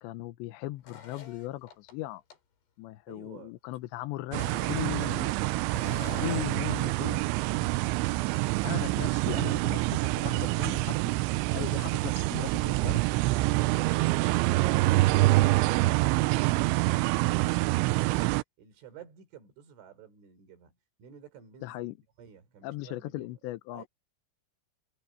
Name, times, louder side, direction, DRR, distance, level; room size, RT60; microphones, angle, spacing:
voice 1, 0.0-2.2 2.8-5.3 6.0-7.3 8.6-9.8 10.2-11.1 11.5-13.0 21.6-21.9 22.6-23.8, left 17 dB, 75° left, 2.8 m, -38 dB
sound 1, 0.8-1.9 2.3-2.4 4.2-5.3 5.7-6.6, left 7 dB, 55° left, 5.4 m, -45 dB
voice 2, 3.1-3.6 18.6-23.4 23.7-23.9, right 8 dB, 70° right, 6.7 m, -53 dB
sound 2, 4.3-18.4, right 20 dB, 90° right, 2.6 m, -26 dB
omnidirectional pair, 5.9 m